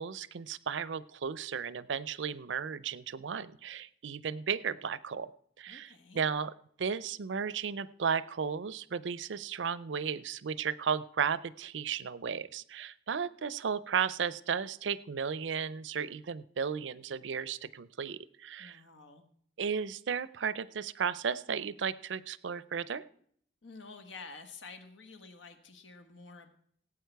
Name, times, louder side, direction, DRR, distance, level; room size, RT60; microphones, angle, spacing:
voice 1, 0.0-5.3 5.6-6.5 6.8-18.8 19.6-23.0, right 6 dB, 75° right, 18 dB, 0.5 m, -34 dB
voice 2, 5.7-6.3 18.6-19.3 23.6-26.5, left 4 dB, 85° left, 8 dB, 1.5 m, -50 dB
17.0 x 8.6 x 4.6 m, 0.66 s
head